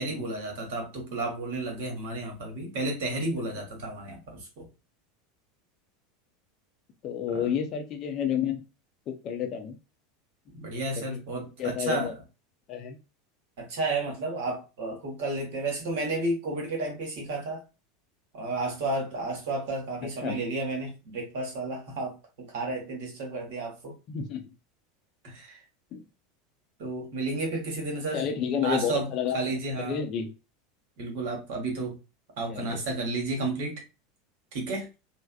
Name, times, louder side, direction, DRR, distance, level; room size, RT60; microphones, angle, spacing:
voice 1, 0.0-4.7 10.5-12.1 13.6-17.6 18.3-23.9 25.2-25.6 26.8-28.2 28.6-29.1 29.3-30.0 31.0-32.0 32.4-33.8 34.5-34.9, right 2 dB, 55° right, 1.1 m, -32 dB
voice 2, 7.0-8.6 9.1-9.8 10.9-11.2 11.6-12.1 12.7-13.0 20.0-20.4 24.1-24.5 25.9-26.0 28.1-30.3 32.5-32.8, left 8 dB, 40° left, 0.5 m, -30 dB
3.3 x 2.0 x 2.2 m
figure-of-eight pair, 80°, 0 cm